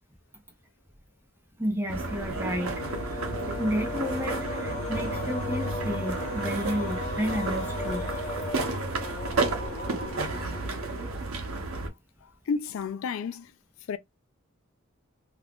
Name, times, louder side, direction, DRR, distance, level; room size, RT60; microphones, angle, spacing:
voice 1, 1.6-2.8 3.6-8.1, equal, 10° right, 0.7 m, -31 dB
sound 1, 1.9-11.2, left 2 dB, 35° left, 0.9 m, -37 dB
sound 2, 1.9-11.9, right 3 dB, 90° right, 0.7 m, -32 dB
voice 2, 12.5-13.5 13.9-14.0, left 5 dB, 80° left, 0.3 m, -31 dB
2.4 x 2.3 x 3.4 m
head